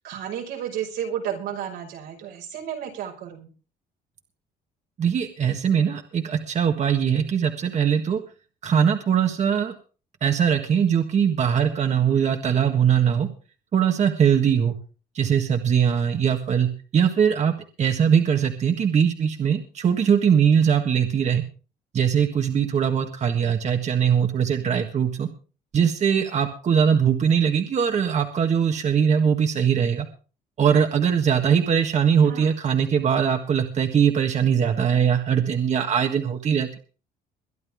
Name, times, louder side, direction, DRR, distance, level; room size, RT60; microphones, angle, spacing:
voice 1, 0.0-3.5 32.2-32.5, right 9 dB, 90° right, 0 dB, 5.5 m, -32 dB
voice 2, 5.0-8.2 8.6-9.7 10.2-13.3 13.7-14.7 15.1-17.5 17.8-21.4 21.9-25.3 25.7-30.1 30.6-36.8, right 7 dB, 45° right, 5 dB, 1.6 m, -21 dB
22.5 x 11.0 x 3.6 m, 0.36 s
cardioid pair, 110°, 17 cm